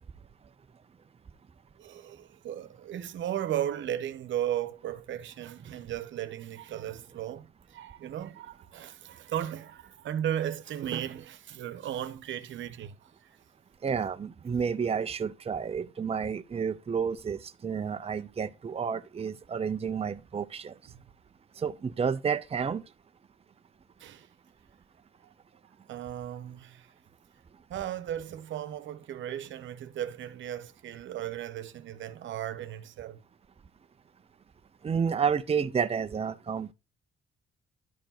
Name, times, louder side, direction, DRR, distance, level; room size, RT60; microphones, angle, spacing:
voice 1, 1.8-13.0 24.0-24.3 25.2-25.3 25.9-26.9 27.7-33.2, right 11 dB, 75° right, 1.1 m, -36 dB
voice 2, 13.8-20.7 21.6-22.8 34.8-36.7, right 6 dB, 30° right, 0.7 m, -30 dB
12.0 x 4.6 x 5.8 m
cardioid pair, 90°, 20 cm